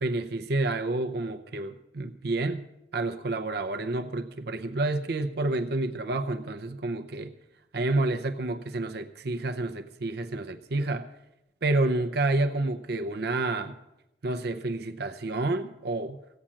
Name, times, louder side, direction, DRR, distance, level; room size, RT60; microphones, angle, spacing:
voice 1, 0.0-2.7 2.9-7.3 7.7-11.1 11.6-13.7 14.2-16.2, right 2 dB, 65° right, 9 dB, 0.7 m, -29 dB
15.5 x 8.8 x 7.3 m, 0.90 s
head